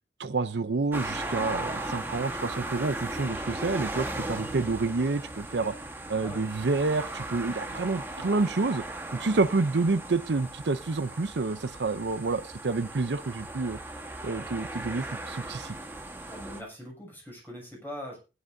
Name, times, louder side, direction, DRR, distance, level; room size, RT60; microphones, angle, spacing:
voice 1, 0.2-5.7 6.1-8.8 9.1-13.8 14.2-15.7, right 3 dB, 75° right, 11 dB, 0.6 m, -28 dB
sound 1, 0.9-16.6, right 1 dB, 10° right, 1.4 m, -37 dB
voice 2, 16.3-18.2, equal, 10° left, -1 dB, 6.7 m, -41 dB
19.5 x 11.0 x 2.7 m, 0.31 s
head